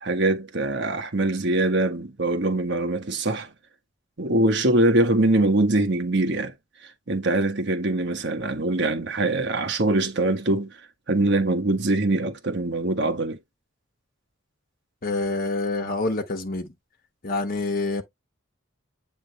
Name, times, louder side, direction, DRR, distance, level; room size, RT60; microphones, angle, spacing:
voice 1, 0.0-3.5 4.2-6.5 7.1-10.7 11.1-13.4, right 2 dB, 60° right, 1.3 m, -23 dB
voice 2, 15.0-16.7 17.2-18.0, left 3 dB, 50° left, 1.2 m, -27 dB
8.2 x 3.6 x 3.3 m
head